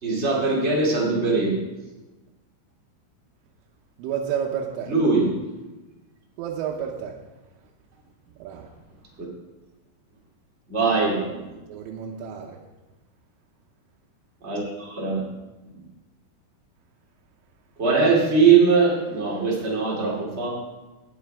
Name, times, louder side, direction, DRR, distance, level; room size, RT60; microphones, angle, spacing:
voice 1, 0.0-1.6 4.9-5.4 10.7-11.5 14.4-15.2 17.8-20.5, right 4 dB, 30° right, -4 dB, 1.2 m, -21 dB
voice 2, 4.0-4.9 6.4-7.1 8.4-8.7 11.7-12.6, right 8 dB, 85° right, -1 dB, 3.4 m, -30 dB
18.5 x 7.4 x 3.5 m, 1.1 s
omnidirectional pair, 5.7 m